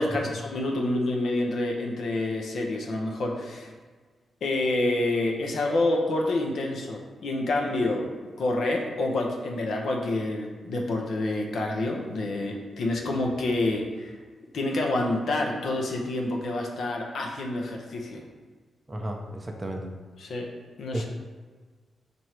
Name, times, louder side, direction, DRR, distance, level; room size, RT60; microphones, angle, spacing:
voice 1, 0.0-3.7 4.4-8.1 8.4-14.1 14.5-18.2 20.2-20.5 20.8-21.1, left 2 dB, 70° left, 0 dB, 0.7 m, -28 dB
voice 2, 18.9-19.9 20.9-21.1, right 1 dB, 15° right, 1 dB, 0.4 m, -33 dB
4.6 x 2.6 x 4.3 m, 1.4 s
wide cardioid pair, 130°, 0 cm